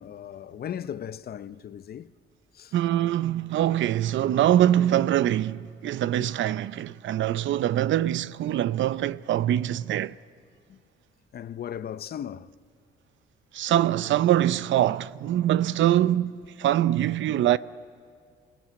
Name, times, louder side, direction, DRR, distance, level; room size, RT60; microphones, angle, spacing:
voice 1, 0.0-2.1 2.5-2.7 6.1-6.3 10.7-10.8 11.3-12.5, left 9 dB, 50° left, 0.7 m, -37 dB
voice 2, 2.7-10.1 13.5-17.6, right 12 dB, 70° right, 0.6 m, -23 dB
27.0 x 17.5 x 9.7 m
cardioid pair, 90°, 20 cm